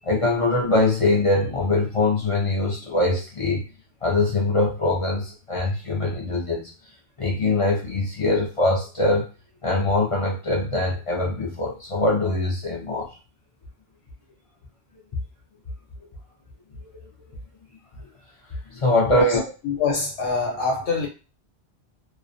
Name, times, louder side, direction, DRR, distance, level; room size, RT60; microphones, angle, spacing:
voice 1, 0.0-3.6 4.0-6.7 7.2-9.3 9.6-13.1 18.7-19.4, left 2 dB, 45° left, 0.4 m, -22 dB
voice 2, 19.6-21.1, left 4 dB, 85° left, 1.1 m, -24 dB
2.4 x 2.1 x 2.5 m
omnidirectional pair, 1.1 m